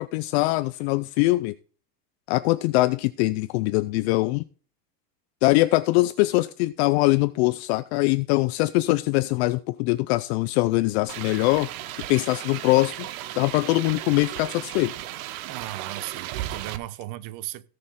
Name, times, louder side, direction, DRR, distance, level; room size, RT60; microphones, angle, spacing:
voice 1, 0.0-1.5 2.3-4.4 5.4-11.7 12.1-13.1 13.4-14.9, left 20 dB, 45° left, 0.5 m, -22 dB
sound 1, 11.1-16.8, right 13 dB, 55° right, 1.2 m, -35 dB
voice 2, 15.4-17.7, right 16 dB, 40° right, 0.9 m, -36 dB
17.5 x 6.6 x 3.7 m
supercardioid pair, 155°, 50 cm